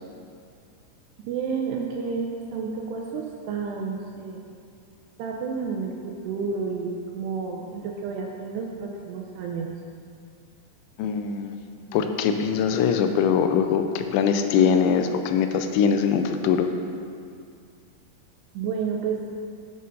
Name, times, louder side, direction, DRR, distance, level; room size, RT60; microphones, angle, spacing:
voice 1, 1.3-4.4 5.2-9.7 18.5-19.2, right 5 dB, 80° right, 0 dB, 2.5 m, -30 dB
voice 2, 11.0-11.6 11.9-16.7, left 7 dB, 85° left, 7 dB, 2.8 m, -22 dB
8.9 x 6.4 x 5.3 m, 2.3 s
omnidirectional pair, 5.3 m